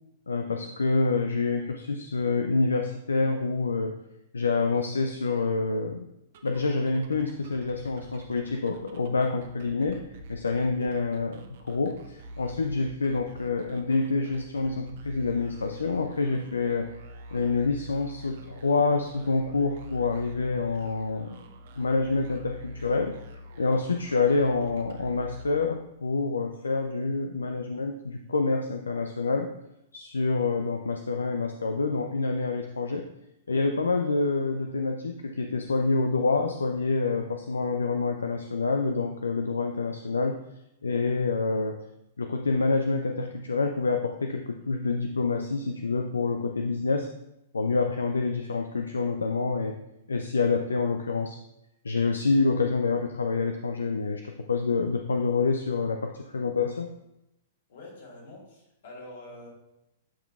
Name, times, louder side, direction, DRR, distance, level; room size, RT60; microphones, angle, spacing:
voice 1, 0.3-4.0 4.3-6.0 6.4-16.9 17.3-21.4 21.8-23.2 23.6-29.5 29.9-33.1 33.5-40.4 40.8-41.8 42.2-47.1 47.5-49.8 50.1-51.4 51.8-56.9, left 3 dB, 85° left, 5 dB, 0.4 m, -27 dB
sound 1, 6.2-26.0, equal, 60° right, 0.8 m, -46 dB
voice 2, 57.7-59.5, left 1 dB, 65° left, -2 dB, 2.3 m, -45 dB
11.0 x 3.8 x 2.4 m, 0.86 s
hypercardioid pair, 115°, 0 cm